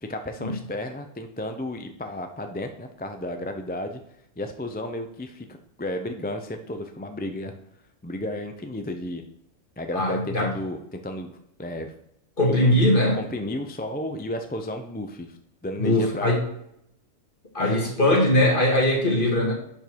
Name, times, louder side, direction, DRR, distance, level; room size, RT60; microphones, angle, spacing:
voice 1, 0.0-4.0 4.4-5.5 5.8-7.6 8.0-9.2 9.8-11.9 12.6-12.8 13.1-16.3 17.6-17.8, left 1 dB, 15° left, 6 dB, 0.4 m, -33 dB
voice 2, 10.0-10.5 12.4-13.2 15.8-16.4 17.5-19.5, left 1 dB, 40° left, -1 dB, 2.1 m, -20 dB
10.5 x 4.5 x 4.6 m, 0.76 s
omnidirectional pair, 1.3 m